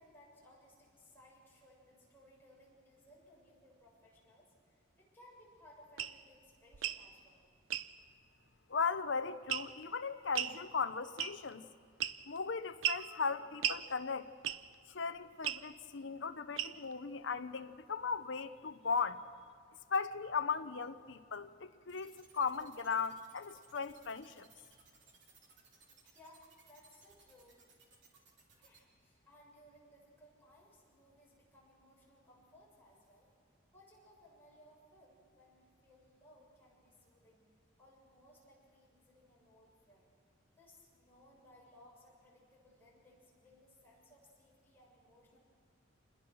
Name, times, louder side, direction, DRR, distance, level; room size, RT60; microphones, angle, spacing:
voice 1, 0.0-7.4 26.0-27.6 28.6-33.3 33.7-37.4 37.8-40.1 40.5-45.4, left 1 dB, 10° left, -5 dB, 7.1 m, -63 dB
sound 1, 6.0-6.2 6.7-7.0 7.7-7.9 9.5-9.8 10.3-10.6 11.2-11.5 12.0-12.4 12.8-13.1 13.6-13.8 14.4-14.7 15.4-15.6 16.6-16.9, right 10 dB, 80° right, 0.7 m, -35 dB
voice 2, 8.7-11.6 12.3-14.3 14.9-19.2 19.9-24.5, left 5 dB, 65° left, 10 dB, 0.8 m, -37 dB
sound 2, 21.9-28.8, right 5 dB, 65° right, 3.2 m, -63 dB
27.5 x 21.0 x 6.3 m, 2.3 s
head